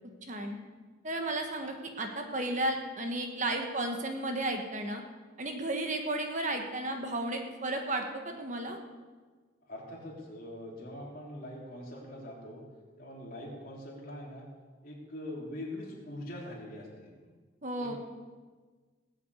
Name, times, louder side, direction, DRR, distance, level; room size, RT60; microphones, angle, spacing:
voice 1, 0.2-0.6 1.0-5.0 5.4-8.8 17.6-17.9, right 1 dB, 35° right, 4 dB, 1.4 m, -33 dB
voice 2, 9.6-12.7 13.0-14.5 14.8-17.3 17.8-18.0, left 1 dB, 45° left, -3 dB, 3.7 m, -43 dB
19.0 x 7.3 x 8.4 m, 1.4 s
head